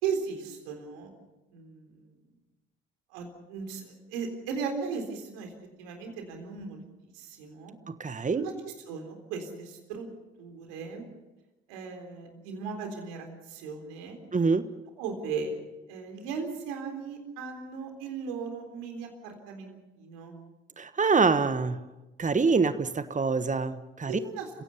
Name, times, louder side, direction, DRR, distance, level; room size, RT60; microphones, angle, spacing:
voice 1, 0.0-1.1 1.5-2.1 3.1-5.5 5.8-6.8 7.1-7.7 8.3-10.1 10.4-11.0 11.7-14.2 15.0-15.5 15.9-20.3 24.1-24.5, right 5 dB, 80° right, 4 dB, 3.9 m, -37 dB
voice 2, 7.9-8.4 14.3-14.7 20.8-21.8 22.2-24.1, right 4 dB, 25° right, 12 dB, 1.4 m, -25 dB
28.5 x 16.5 x 7.0 m, 1.1 s
hypercardioid pair, 50°, 29 cm